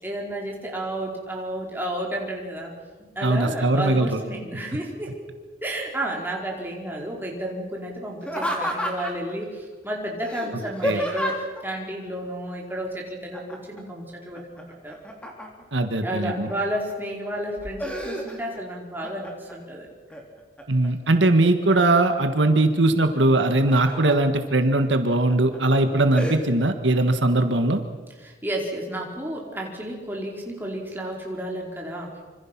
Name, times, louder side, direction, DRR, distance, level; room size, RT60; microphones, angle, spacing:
voice 1, 0.0-2.7 3.1-5.2 5.6-15.0 16.0-19.9 28.2-32.2, right 1 dB, 10° right, -1 dB, 4.6 m, -32 dB
voice 2, 3.2-4.2 10.8-11.0 15.7-16.5 20.7-27.8, right 2 dB, 80° right, 7 dB, 1.6 m, -20 dB
Laughter, 8.2-9.3 10.2-11.6 13.3-13.8 14.1-15.7 16.3-16.9 17.4-18.6 19.0-19.6 20.1-20.9 21.3-22.2 23.4-24.2 24.7-24.8 25.3-25.6 26.1-26.4, equal, 5° left, 3.5 m, -31 dB
26.0 x 26.0 x 6.0 m, 1.4 s
head